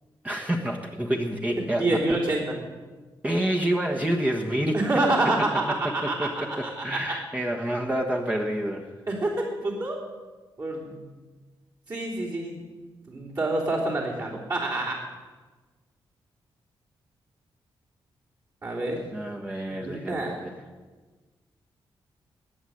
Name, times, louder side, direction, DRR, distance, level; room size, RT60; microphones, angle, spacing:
voice 1, 0.2-2.2 3.2-4.8 6.0-8.9 19.1-20.5, right 1 dB, 15° right, 0 dB, 1.3 m, -28 dB
voice 2, 1.6-2.6 4.7-6.3 6.6-7.0 9.1-10.0 10.6-11.0 11.9-12.6 13.1-15.0 18.6-19.0 19.7-20.4, right 2 dB, 40° right, -5 dB, 3.4 m, -27 dB
20.0 x 7.2 x 7.9 m, 1.3 s
cardioid pair, 105°, 9 cm